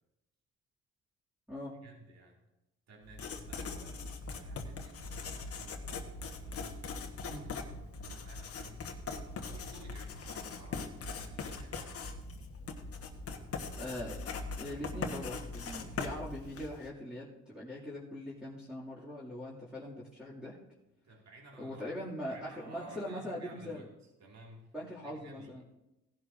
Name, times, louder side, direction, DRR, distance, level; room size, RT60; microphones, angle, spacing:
voice 1, 1.8-2.4 2.9-5.9 6.4-6.8 7.3-12.0 21.0-22.0 22.3-25.6, right 2 dB, 60° right, 0 dB, 2.5 m, -55 dB
Writing, 3.0-16.9, left 4 dB, 50° left, 1.3 m, -41 dB
voice 2, 7.3-7.6 13.7-14.3 14.6-20.6 21.6-23.9 24.7-25.6, left 1 dB, 5° right, -9 dB, 2.5 m, -42 dB
17.0 x 11.0 x 2.7 m, 0.93 s
cardioid pair, 90°, 30 cm